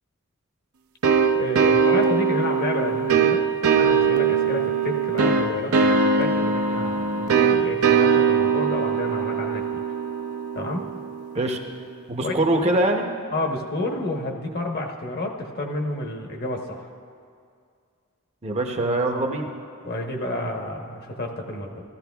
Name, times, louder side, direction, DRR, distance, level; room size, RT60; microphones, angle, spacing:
sound 1, 1.0-11.5, right 6 dB, 80° right, 0.6 m, -21 dB
voice 1, 1.3-3.4 3.7-9.6 10.5-10.9 12.2-12.4 13.3-16.9 19.8-21.8, left 2 dB, 45° left, 2 dB, 1.0 m, -30 dB
voice 2, 12.1-13.1 18.4-19.5, right 1 dB, 30° right, 3 dB, 0.7 m, -23 dB
14.5 x 13.0 x 2.3 m, 2.3 s
head